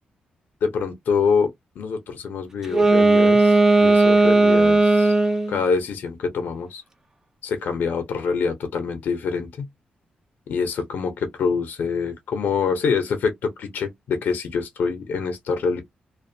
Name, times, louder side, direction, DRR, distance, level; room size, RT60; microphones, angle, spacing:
voice 1, 0.6-5.1 5.5-6.8 7.4-9.7 10.5-15.8, left 5 dB, 75° left, 0.7 m, -25 dB
Wind instrument woodwind instrument, 2.6-5.6, right 2 dB, 15° right, 0.5 m, -16 dB
2.5 x 2.3 x 2.6 m
wide cardioid pair, 145°, 3 cm